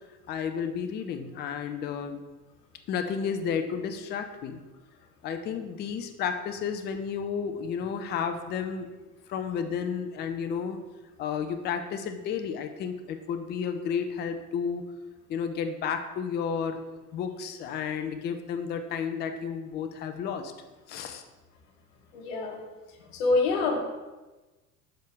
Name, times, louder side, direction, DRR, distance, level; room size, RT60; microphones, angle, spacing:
voice 1, 0.3-2.2 2.9-4.6 5.2-8.9 9.3-10.8 11.2-14.8 15.3-16.8 17.1-20.5 20.9-21.2, left 7 dB, 25° left, 7 dB, 0.4 m, -32 dB
voice 2, 22.1-22.6 23.1-23.8, left 3 dB, 60° left, 3 dB, 1.2 m, -26 dB
6.1 x 4.5 x 3.4 m, 1.2 s
hypercardioid pair, 80°, 46 cm